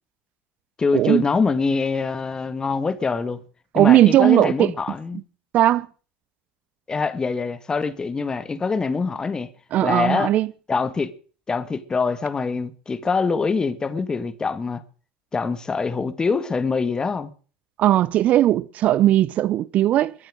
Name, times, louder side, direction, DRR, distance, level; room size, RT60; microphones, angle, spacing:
voice 1, 0.8-3.4 3.7-5.2 6.9-9.5 9.8-10.3 10.7-11.1 11.5-14.8 15.3-17.3, left 4 dB, 25° left, 1.7 m, -24 dB
voice 2, 3.7-4.7 5.5-5.9 9.7-10.5 17.8-20.1, right 13 dB, 50° right, 0.6 m, -17 dB
22.0 x 7.4 x 6.4 m
hypercardioid pair, 80°, 3 cm